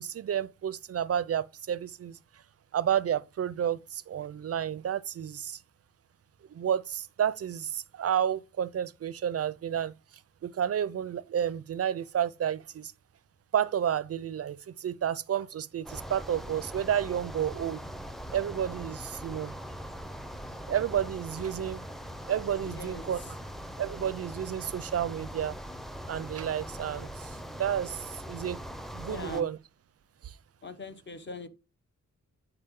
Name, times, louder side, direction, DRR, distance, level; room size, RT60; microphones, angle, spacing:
voice 1, 0.0-2.2 2.7-5.6 6.5-9.9 10.4-12.9 13.5-17.8 18.3-19.6 20.7-21.8 22.3-23.2 23.8-25.6 26.1-28.6 28.9-29.6 30.2-30.3, right 9 dB, 50° right, 0.4 m, -31 dB
sound 1, 15.8-29.4, equal, ahead, 0.5 m, -41 dB
voice 2, 22.7-23.4 29.0-29.5 30.6-31.5, left 3 dB, 35° left, 1.0 m, -42 dB
8.7 x 4.8 x 3.7 m
wide cardioid pair, 160°, 31 cm